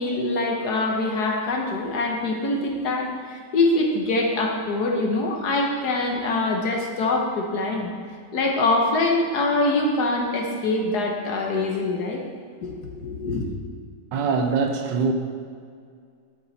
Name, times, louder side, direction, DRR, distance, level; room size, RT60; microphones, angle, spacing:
voice 1, 0.0-7.9 8.3-12.2 12.6-13.4, left 2 dB, 65° left, 1 dB, 1.6 m, -24 dB
voice 2, 14.1-15.1, right 5 dB, 80° right, 6 dB, 1.5 m, -23 dB
11.5 x 7.8 x 4.1 m, 2.2 s
omnidirectional pair, 2.0 m